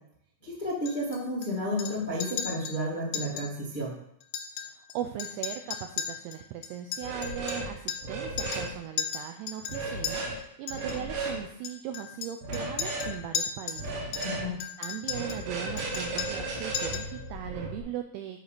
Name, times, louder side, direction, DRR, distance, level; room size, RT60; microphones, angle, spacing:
voice 1, 0.4-3.9 14.2-14.5, equal, 30° left, -6 dB, 0.8 m, -32 dB
Chink clink, 0.9-1.5 1.8-2.8 3.1-3.5 3.8-3.9 4.2-4.9 5.2-8.1 8.4-8.7 9.0-10.1 10.7-11.0 11.7-13.9 14.1-15.4 15.8-16.5 16.8-17.1, left 8 dB, 90° left, 3.5 m, -36 dB
voice 2, 4.6-14.1 14.8-18.4, right 10 dB, 85° right, 6 dB, 2.3 m, -39 dB
sound 1, 7.0-7.7 8.0-8.7 9.7-10.3 10.7-11.4 12.4-13.1 13.8-14.5 15.1-17.8, right 2 dB, 60° right, 2.6 m, -34 dB
10.5 x 4.0 x 6.7 m, 0.73 s
omnidirectional pair, 5.3 m